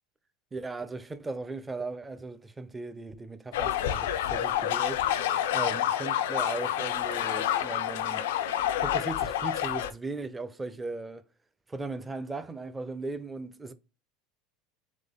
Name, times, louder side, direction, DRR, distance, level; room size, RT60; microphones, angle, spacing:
voice 1, 0.5-5.1 5.5-8.3 8.8-11.2 11.7-13.7, right 3 dB, 15° right, 0.5 m, -37 dB
sound 1, 3.5-9.9, left 11 dB, 85° left, 0.4 m, -28 dB
3.7 x 3.5 x 3.6 m
supercardioid pair, 110°, 0 cm